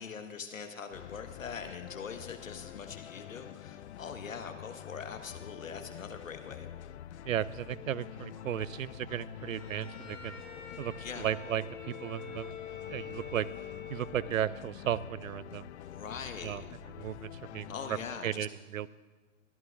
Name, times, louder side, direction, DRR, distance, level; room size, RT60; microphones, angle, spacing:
voice 1, 0.0-6.7 11.0-11.3 15.8-16.6 17.7-18.5, left 6 dB, 85° left, 7 dB, 1.4 m, -42 dB
sound 1, 0.9-18.2, left 12 dB, 60° left, 0.5 m, -47 dB
voice 2, 7.2-10.4 10.8-12.5 12.9-13.5 13.9-15.7 16.4-16.6 17.0-18.0 18.2-18.9, right 10 dB, 85° right, 19 dB, 0.5 m, -35 dB
Bowed string instrument, 9.3-14.6, left 6 dB, 30° left, 4.3 m, -46 dB
23.0 x 11.0 x 2.4 m, 1.4 s
hypercardioid pair, 125°, 39 cm